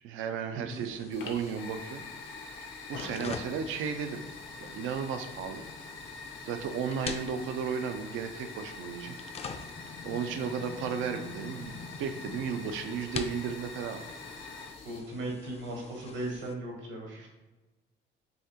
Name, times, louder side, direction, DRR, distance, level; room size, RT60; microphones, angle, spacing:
voice 1, 0.0-2.4 2.9-4.2 4.6-5.6 6.4-9.2 10.0-14.1, right 6 dB, 90° right, 7 dB, 0.4 m, -34 dB
sound 1, 0.7-16.5, left 5 dB, 30° left, 0.4 m, -45 dB
Fire, 1.1-15.0, left 3 dB, 75° left, 0.7 m, -45 dB
voice 2, 14.8-17.3, right 1 dB, 75° right, 0 dB, 1.0 m, -37 dB
5.6 x 2.8 x 2.8 m, 1.1 s
cardioid pair, 90°, 20 cm